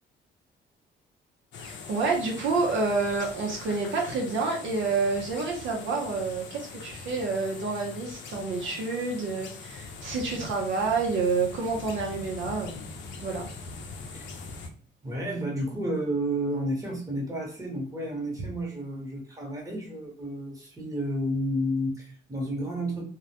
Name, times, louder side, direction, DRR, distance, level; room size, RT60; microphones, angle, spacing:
Wind Through Trees, 1.5-14.7, left 4 dB, 65° left, 0.5 m, -42 dB
voice 1, 1.6-12.8 13.2-13.5, right 4 dB, 70° right, 0 dB, 0.6 m, -28 dB
voice 2, 15.0-23.0, equal, 15° right, -2 dB, 1.0 m, -31 dB
2.2 x 2.0 x 2.8 m, 0.43 s
cardioid pair, 90°, 20 cm